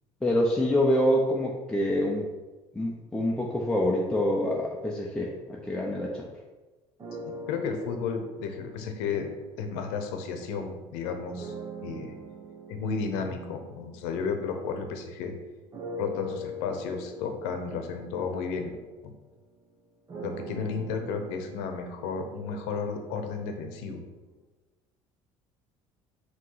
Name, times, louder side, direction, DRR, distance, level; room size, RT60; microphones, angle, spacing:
voice 1, 0.2-2.2 2.7-6.3, left 1 dB, 5° left, -4 dB, 0.8 m, -26 dB
sound 1, 7.0-10.6 11.4-15.1 15.7-23.7, left 1 dB, 30° right, 1.0 m, -43 dB
voice 2, 7.2-9.3 9.6-11.5 11.8-12.1 12.7-15.3 16.0-18.8 20.2-24.0, left 5 dB, 90° left, 5 dB, 0.8 m, -33 dB
5.4 x 3.1 x 5.6 m, 1.2 s
cardioid pair, 105°, 11 cm